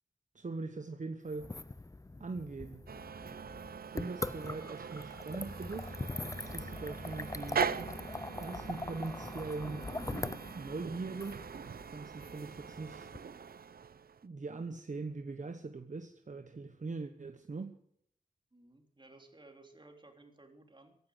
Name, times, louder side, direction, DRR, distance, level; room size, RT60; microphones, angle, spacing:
voice 1, 0.3-1.6 2.2-2.9 3.9-7.7 8.3-9.9 10.5-13.1 14.2-17.7, right 3 dB, 55° right, 7 dB, 1.2 m, -41 dB
sound 1, 1.3-13.2, left 2 dB, 20° left, 0.7 m, -42 dB
sound 2, 2.9-14.2, right 7 dB, 80° right, 0.7 m, -42 dB
voice 2, 18.5-21.0, right 2 dB, 30° right, 4 dB, 3.5 m, -57 dB
15.5 x 11.5 x 8.1 m, 0.69 s
cardioid pair, 50°, 15 cm